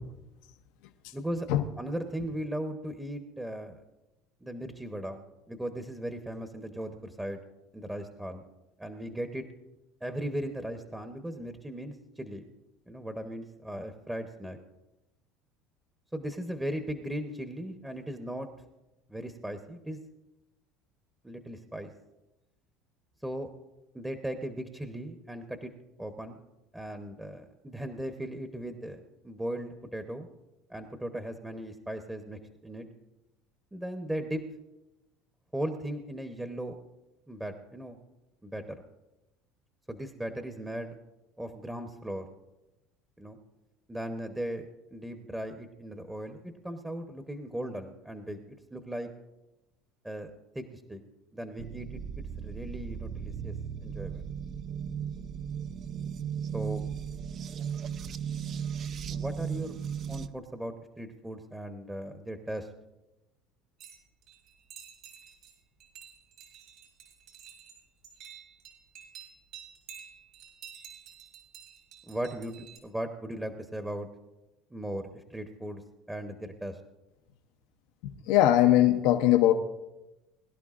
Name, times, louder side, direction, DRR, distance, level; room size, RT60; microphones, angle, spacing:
voice 1, 1.1-1.5 1.8-3.8 4.4-5.2 5.5-7.4 7.7-8.4 8.8-9.5 10.0-12.5 12.9-14.6 16.1-18.5 19.1-20.0 21.2-21.9 23.2-23.5 23.9-25.7 26.0-26.4 26.7-30.3 30.7-32.9 33.7-34.4 35.5-36.8 37.3-38.0 38.4-38.8 39.9-40.9 41.4-42.3 43.2-43.4 43.9-49.1 50.0-51.0 51.3-52.0 52.4-53.5 53.8-54.3 56.5-56.8 59.1-59.8 60.1-62.7 72.1-74.1 74.7-75.8 76.1-76.8, right 1 dB, 10° right, 6 dB, 0.9 m, -37 dB
sound 1, 51.6-60.3, right 8 dB, 45° right, 0.5 m, -36 dB
sound 2, 63.8-65.5 65.8-72.8, right 8 dB, 65° right, 4.6 m, -50 dB
voice 2, 78.0-79.5, left 13 dB, 75° left, 6 dB, 0.7 m, -21 dB
21.0 x 11.0 x 2.5 m, 0.99 s
supercardioid pair, 95°, 0 cm